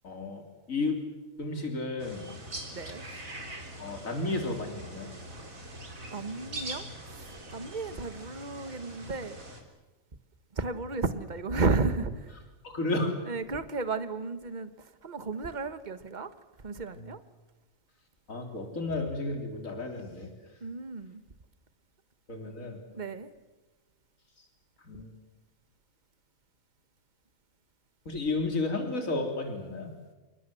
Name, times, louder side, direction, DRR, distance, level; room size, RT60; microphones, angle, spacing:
voice 1, 0.0-0.4 0.7-1.0 1.4-2.2 3.1-3.2 3.8-5.1 12.6-13.1 16.9-17.1 18.3-20.3 22.3-22.8 24.8-25.1 28.1-29.9, left 2 dB, 75° left, 4 dB, 3.9 m, -32 dB
sound 1, 2.0-9.6, right 1 dB, 85° right, 3.9 m, -43 dB
voice 2, 6.1-6.9 7.1-9.4 10.6-12.2 13.3-14.7 15.0-16.3 16.6-17.2 20.6-21.2 22.9-23.3, right 3 dB, 35° right, 11 dB, 1.5 m, -33 dB
28.0 x 23.0 x 7.8 m, 1.2 s
omnidirectional pair, 1.4 m